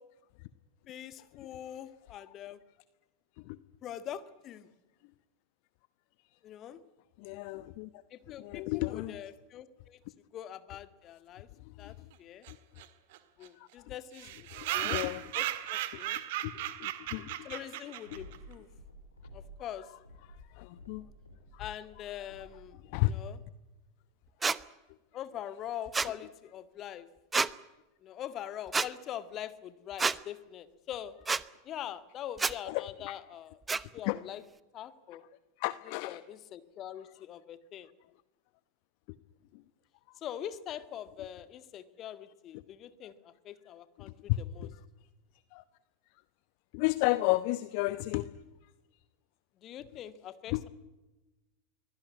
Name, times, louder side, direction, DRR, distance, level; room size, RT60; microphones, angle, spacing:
voice 1, 0.9-2.6 3.8-4.7 6.4-6.8 8.1-10.0 10.3-11.5 11.8-12.5 13.4-14.4 14.7-15.0 15.4-16.2 17.4-18.7 19.3-19.9 21.6-23.4 25.1-27.1 28.0-31.1 31.6-34.4 34.7-35.2 35.9-37.9 40.2-44.7 49.6-50.7, left 10 dB, 35° left, 13 dB, 1.8 m, -43 dB
voice 2, 7.2-7.9 8.4-9.2 11.8-11.9 13.6-13.7 14.5-15.2 16.4-17.4 18.1-18.2 20.5-21.1 21.5-21.6 22.8-23.2 32.7-33.1 34.0-34.2 35.6-36.2 39.5-39.6 42.5-42.6 44.0-44.7 45.5-45.6 46.7-48.3 50.5-50.6, left 19 dB, 50° left, 15 dB, 0.9 m, -33 dB
sound 1, 12.4-12.5 12.8-12.9 13.1-13.2 13.4-13.5 14.1-18.4, right 14 dB, 55° right, 1.9 m, -36 dB
sound 2, 18.0-19.6 20.0-22.7, equal, 90° left, 4.8 m, -52 dB
sound 3, 24.4-24.6 25.9-26.1 27.3-27.5 28.7-28.9 30.0-30.2 31.3-31.4 32.4-32.5 33.7-33.8, right 4 dB, 15° right, 0.9 m, -28 dB
24.0 x 16.5 x 9.6 m, 1.0 s
figure-of-eight pair, 85°, 0 cm